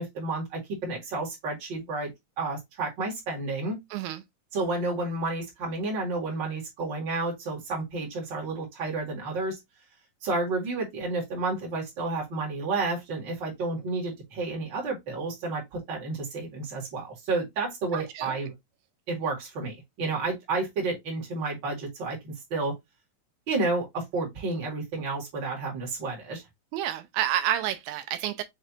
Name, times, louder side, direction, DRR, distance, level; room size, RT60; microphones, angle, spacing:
voice 1, 0.0-2.1 2.4-3.8 4.5-9.6 10.2-18.5 19.1-22.7 23.5-26.4, right 3 dB, 40° right, 2.3 m, -31 dB
voice 2, 3.9-4.2 17.9-18.3 26.7-28.4, right 11 dB, 85° right, 2.3 m, -29 dB
5.9 x 3.3 x 2.7 m
omnidirectional pair, 4.0 m